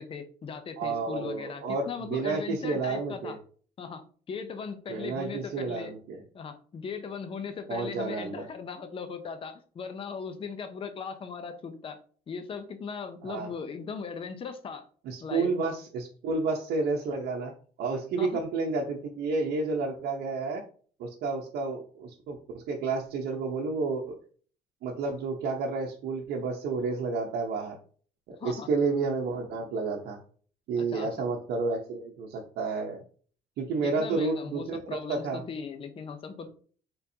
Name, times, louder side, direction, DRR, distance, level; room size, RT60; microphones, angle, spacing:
voice 1, 0.0-3.4 3.8-5.9 6.3-12.0 12.3-14.9 15.2-15.5 18.2-18.4 28.4-28.7 30.8-31.1 33.8-36.5, left 5 dB, 35° left, 9 dB, 0.6 m, -38 dB
voice 2, 0.8-3.4 4.9-6.2 7.7-8.5 13.2-13.5 15.1-17.5 17.8-20.6 21.0-24.1 24.8-27.8 28.3-30.2 30.7-33.0 33.6-34.8 35.1-35.4, right 4 dB, 75° right, -1 dB, 0.8 m, -30 dB
4.2 x 3.8 x 2.7 m, 0.43 s
cardioid pair, 110°, 17 cm